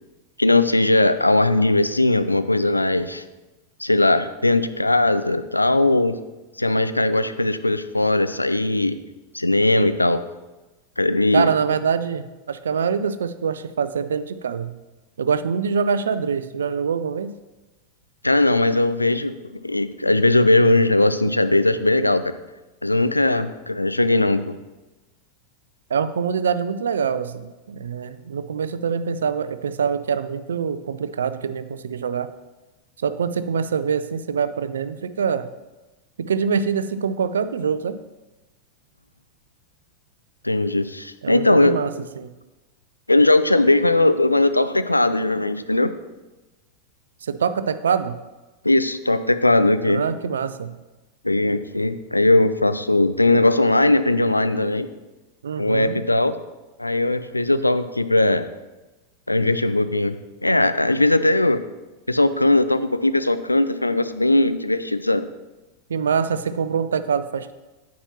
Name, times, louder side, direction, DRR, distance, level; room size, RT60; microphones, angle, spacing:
voice 1, 0.4-3.2 3.8-6.1 6.6-9.0 9.3-10.2 11.0-11.5 18.2-19.3 19.6-22.3 22.8-24.5 40.4-41.8 43.1-45.9 48.6-50.0 51.2-54.9 55.6-56.4 56.8-58.5 59.3-60.2 60.4-61.6 62.1-65.3, left 2 dB, 85° left, 12 dB, 0.4 m, -19 dB
voice 2, 11.3-14.7 15.2-17.3 25.9-32.3 33.0-35.5 36.2-38.0 41.2-42.3 47.2-48.2 49.9-50.7 55.4-56.0 65.9-67.5, right 6 dB, 65° right, 13 dB, 0.4 m, -24 dB
9.7 x 8.4 x 2.9 m, 1.1 s
figure-of-eight pair, 90°, 0 cm